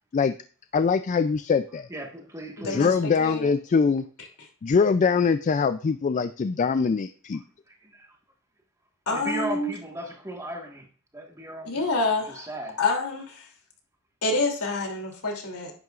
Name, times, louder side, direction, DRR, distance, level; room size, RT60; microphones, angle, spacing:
voice 1, 0.7-1.9 2.7-4.0 4.6-7.4, left 5 dB, 35° left, 11 dB, 0.3 m, -23 dB
voice 2, 1.9-3.0 7.3-8.2 9.1-12.8, equal, 15° right, 1 dB, 1.6 m, -37 dB
voice 3, 2.6-3.5 9.1-9.7 11.7-12.5 12.8-13.5 14.2-15.7, left 2 dB, 85° left, 1 dB, 2.9 m, -27 dB
10.5 x 9.3 x 2.5 m, 0.42 s
head